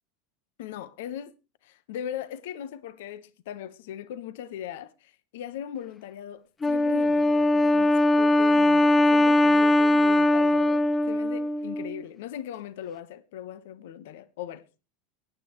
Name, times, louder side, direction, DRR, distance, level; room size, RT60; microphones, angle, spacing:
voice 1, 0.6-1.3 1.6-14.6, left 10 dB, 70° left, 1.2 m, -39 dB
Wind instrument woodwind instrument, 6.6-12.0, left 1 dB, 25° left, 1.1 m, -21 dB
23.0 x 9.9 x 3.1 m
hypercardioid pair, 85°, 0 cm